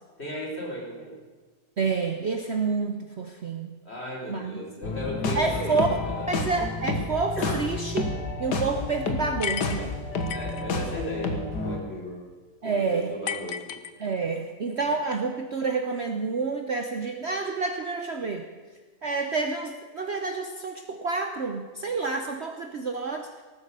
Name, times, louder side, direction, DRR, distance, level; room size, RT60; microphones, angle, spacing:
voice 1, 0.2-1.1 3.8-5.8 6.0-6.3 7.4-7.6 10.3-12.2 12.6-13.8 14.8-14.9, equal, 40° left, -3 dB, 4.4 m, -36 dB
voice 2, 1.8-3.8 4.3-4.6 5.3-5.9 6.3-8.0 8.4-10.0 12.6-13.1 14.0-18.5 19.0-23.3, right 4 dB, 50° right, 5 dB, 1.0 m, -28 dB
sound 1, 4.8-11.8, left 3 dB, 85° left, 2.1 m, -30 dB
sound 2, 9.4-10.6 13.3-14.4, left 8 dB, 60° left, 1.1 m, -34 dB
18.0 x 9.6 x 6.7 m, 1.4 s
omnidirectional pair, 1.8 m